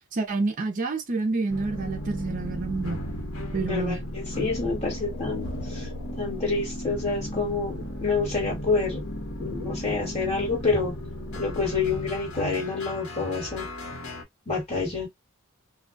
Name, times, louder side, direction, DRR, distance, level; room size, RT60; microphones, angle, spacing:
voice 1, 0.1-3.0 3.5-4.0, right 3 dB, 40° right, 0.5 m, -28 dB
sound 1, 1.5-14.2, equal, 75° left, 0.9 m, -35 dB
voice 2, 3.6-9.0 9.4-10.9 11.4-13.7 14.5-15.1, left 4 dB, 30° left, 1.4 m, -28 dB
2.2 x 2.2 x 2.5 m
head